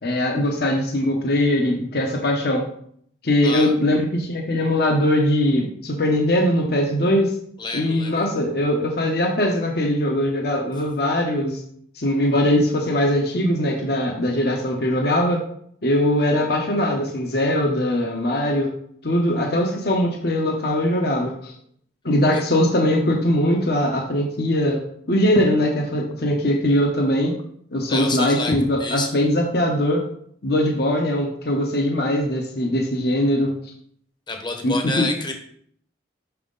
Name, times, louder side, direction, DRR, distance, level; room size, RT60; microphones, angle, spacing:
voice 1, 0.0-2.6 3.2-7.3 7.7-11.6 12.0-15.4 15.8-18.7 19.0-21.5 22.0-27.3 27.7-30.0 30.4-33.5 34.6-35.1, left 1 dB, 55° left, 1 dB, 1.0 m, -21 dB
voice 2, 7.6-8.1 22.3-22.4 27.9-28.5 28.8-29.1 34.3-35.3, left 3 dB, 25° left, 4 dB, 0.9 m, -28 dB
6.2 x 5.8 x 3.9 m, 0.64 s
head